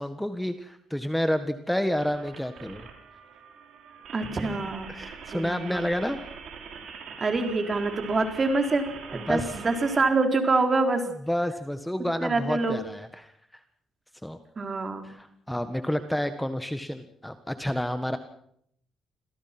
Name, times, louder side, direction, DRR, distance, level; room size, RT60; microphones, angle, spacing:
voice 1, 0.0-2.9 4.9-6.2 9.3-9.5 11.3-13.6 14.2-14.4 15.0-18.2, equal, 5° left, 9 dB, 1.6 m, -29 dB
sound 1, 1.9-10.1, right 6 dB, 70° right, 5.8 m, -43 dB
voice 2, 4.1-4.9 5.3-5.8 7.2-8.9 9.1-11.1 12.2-12.8 14.6-15.1, right 3 dB, 35° right, 5 dB, 4.1 m, -25 dB
27.0 x 17.0 x 6.1 m, 0.69 s
cardioid pair, 90°, 0 cm